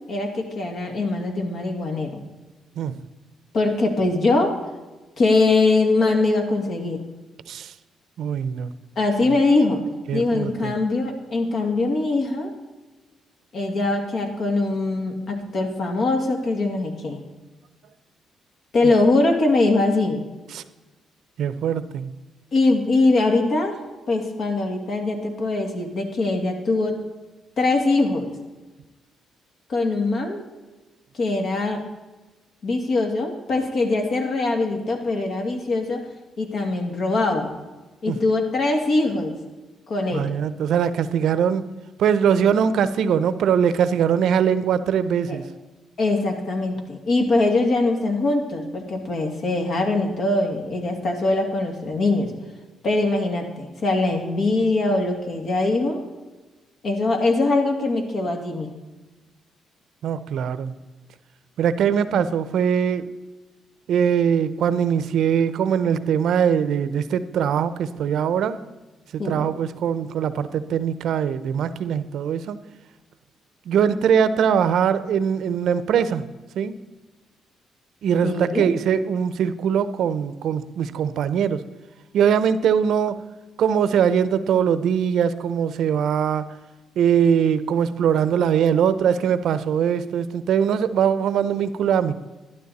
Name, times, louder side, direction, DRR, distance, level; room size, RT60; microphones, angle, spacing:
voice 1, 0.1-2.2 3.5-4.5 5.2-7.0 9.0-9.8 10.1-12.5 13.5-17.2 18.7-20.2 22.5-23.8 24.1-26.9 27.6-28.3 29.7-30.4 31.1-31.8 32.6-36.0 36.4-37.5 38.0-39.3 39.9-40.3 45.3-45.4 46.0-52.3 52.8-56.0 56.8-58.7 62.1-62.3 69.2-69.5 78.2-78.7, left 2 dB, 60° left, 3 dB, 2.3 m, -22 dB
voice 2, 8.2-8.7 9.3-9.4 10.1-10.7 20.5-20.6 21.4-22.1 38.1-38.2 40.1-41.6 42.0-45.5 60.0-60.7 61.6-63.1 63.9-68.6 69.1-72.6 73.7-76.2 76.6-76.8 78.0-81.6 82.1-83.1 83.6-86.4 87.0-92.1, right 8 dB, 75° right, 13 dB, 0.7 m, -21 dB
12.0 x 11.5 x 4.2 m, 1.2 s
cardioid pair, 90°, 0 cm